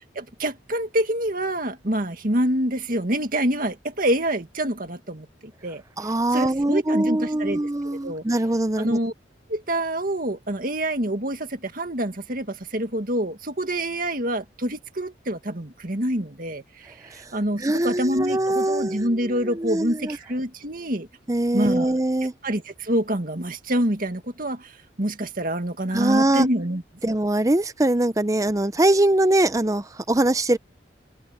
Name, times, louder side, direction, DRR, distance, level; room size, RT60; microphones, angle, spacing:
voice 1, 0.2-5.8 6.3-8.2 8.8-9.1 9.5-21.1 21.5-21.9 22.4-26.8, right 1 dB, 50° right, 2.1 m, -26 dB
voice 2, 6.0-9.0 17.6-20.2 21.3-22.3 25.9-26.5 27.0-30.6, right 1 dB, 20° right, 0.7 m, -22 dB
head